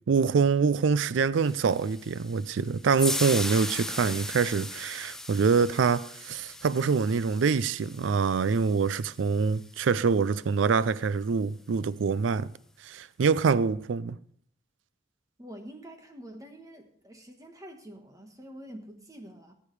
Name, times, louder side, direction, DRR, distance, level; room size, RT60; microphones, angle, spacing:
voice 1, 0.1-12.5 12.8-14.2, right 5 dB, 70° right, 0.4 m, -25 dB
sound 1, 1.4-9.7, left 1 dB, 5° left, 0.5 m, -38 dB
voice 2, 15.4-19.5, equal, 20° right, 1.4 m, -46 dB
17.0 x 8.8 x 3.3 m
head